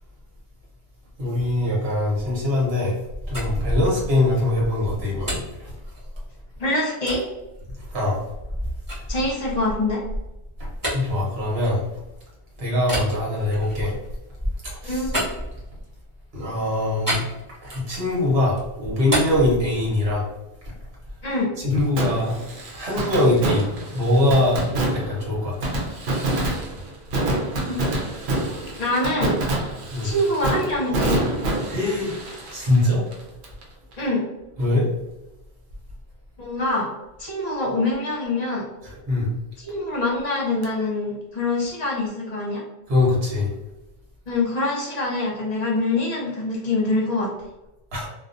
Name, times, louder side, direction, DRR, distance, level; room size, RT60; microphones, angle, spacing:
voice 1, 1.2-3.0 3.3-5.7 7.8-8.2 10.9-11.8 12.6-14.0 14.6-15.0 16.3-17.3 17.6-20.3 20.6-20.7 21.6-22.4 22.7-25.7 29.9-30.1 31.7-32.1 32.5-33.0 34.6-34.9 38.8-39.3 42.9-43.5 47.9-48.1, left 1 dB, 70° right, -4 dB, 1.2 m, -22 dB
sound 1, 3.1-6.4 7.1-7.2 7.8-12.2 12.8-16.0 17.1-18.1 18.5-20.3, equal, 20° right, 0.9 m, -30 dB
voice 2, 6.6-7.3 9.1-10.0 14.8-15.1 21.2-21.5 27.7-28.0 28.8-29.4 30.0-31.2 34.0-34.2 36.4-36.9 37.2-38.6 39.6-42.6 44.3-47.3, left 2 dB, 45° left, -4 dB, 0.8 m, -24 dB
Fireworks, 22.0-33.6 33.9-34.0 40.6-40.7, right 2 dB, 90° right, 0.9 m, -27 dB
2.3 x 2.3 x 2.5 m, 0.97 s
omnidirectional pair, 1.1 m